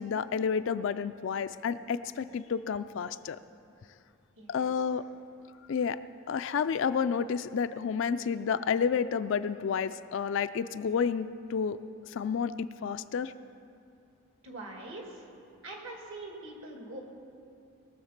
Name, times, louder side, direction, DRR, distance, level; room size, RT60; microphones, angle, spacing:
voice 1, 0.0-3.4 4.5-5.0 5.7-6.0 6.3-11.8 12.1-13.3, left 6 dB, 60° left, 11 dB, 0.3 m, -30 dB
voice 2, 4.4-4.8 14.4-15.3 15.6-17.0, right 2 dB, 65° right, 0 dB, 2.3 m, -43 dB
21.5 x 7.2 x 5.9 m, 2.5 s
head